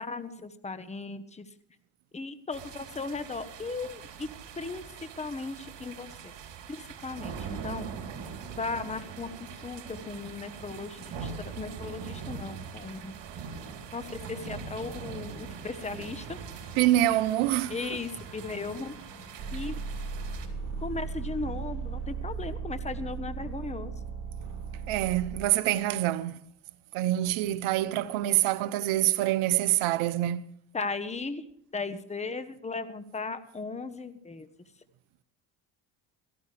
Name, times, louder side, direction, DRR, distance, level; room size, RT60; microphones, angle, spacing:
voice 1, 0.0-1.5 2.1-4.3 4.6-6.1 6.7-7.9 8.6-13.1 13.9-16.4 17.7-18.9 19.5-19.7 20.8-23.9 30.7-31.4 31.7-34.5, left 3 dB, 15° left, 1.2 m, -37 dB
sound 1, 2.5-20.5, right 6 dB, 55° right, 3.8 m, -42 dB
sound 2, 16.1-25.9 27.4-27.7 28.1-28.3, right 5 dB, 40° right, 7.8 m, -38 dB
voice 2, 16.8-18.0 24.9-26.4 26.9-30.4, right 14 dB, 75° right, 1.0 m, -26 dB
18.0 x 15.0 x 3.4 m
supercardioid pair, 80°, 49 cm